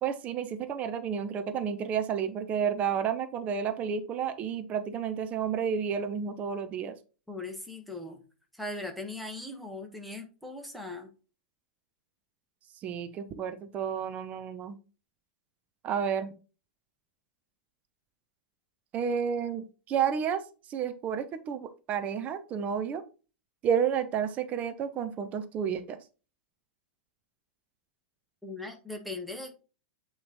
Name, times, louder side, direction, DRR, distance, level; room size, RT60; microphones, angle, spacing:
voice 1, 0.0-7.0 12.8-14.8 15.8-16.3 18.9-20.4 20.7-23.0 23.6-26.0, right 7 dB, 30° right, 9 dB, 0.7 m, -31 dB
voice 2, 7.3-8.2 8.5-11.1 28.4-29.6, left 2 dB, ahead, 2 dB, 1.3 m, -39 dB
8.6 x 3.1 x 3.8 m, 0.34 s
figure-of-eight pair, 95°, 5 cm